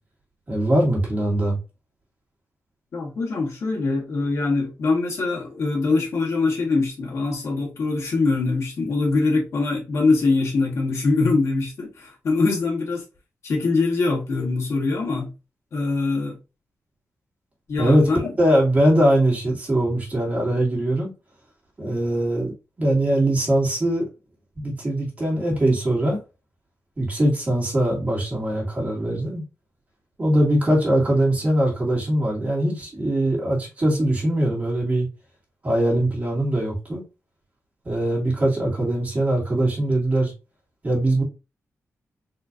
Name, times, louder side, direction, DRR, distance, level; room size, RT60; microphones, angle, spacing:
voice 1, 0.5-1.6 17.8-18.1 18.4-21.1 21.8-22.5 22.8-24.1 24.6-26.2 27.0-29.4 30.2-35.1 35.6-37.0 37.8-40.3 40.8-41.2, right 1 dB, 30° right, 2.4 m, -21 dB
voice 2, 2.9-13.0 13.4-15.3 15.7-16.4 17.7-18.3, left 3 dB, 65° left, 1.9 m, -23 dB
4.4 x 3.2 x 2.6 m
wide cardioid pair, 140°, 5 cm